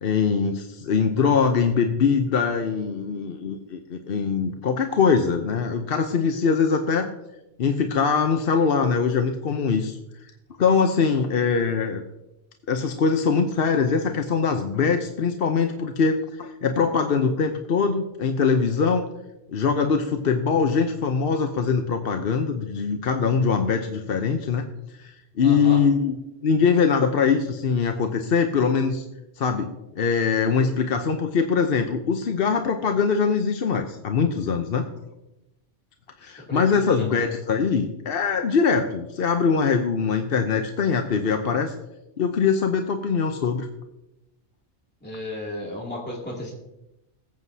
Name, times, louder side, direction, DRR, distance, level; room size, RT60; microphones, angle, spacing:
voice 1, 0.0-7.1 7.6-10.0 10.6-12.0 12.7-19.1 19.5-24.6 25.0-25.1 25.4-29.0 29.4-34.9 36.2-41.7 42.2-43.7, left 5 dB, 55° left, 5 dB, 0.9 m, -22 dB
voice 2, 25.4-25.8 36.2-37.1 45.0-46.5, left 1 dB, 10° left, -4 dB, 2.5 m, -34 dB
20.0 x 7.9 x 2.7 m, 0.93 s
omnidirectional pair, 1.2 m